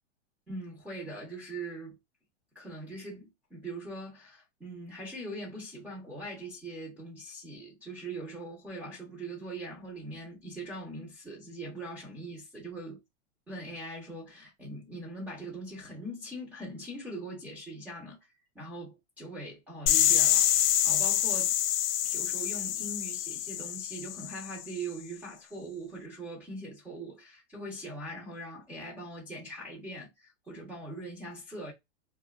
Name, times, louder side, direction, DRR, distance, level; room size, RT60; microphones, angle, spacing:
voice 1, 0.5-2.0 2.5-13.0 13.5-18.2 18.5-20.5 20.8-21.5 22.0-31.7, right 1 dB, 5° right, 0.6 m, -41 dB
sound 1, 19.9-24.6, left 11 dB, 90° left, 0.5 m, -27 dB
2.5 x 2.2 x 2.3 m
supercardioid pair, 165°, 33 cm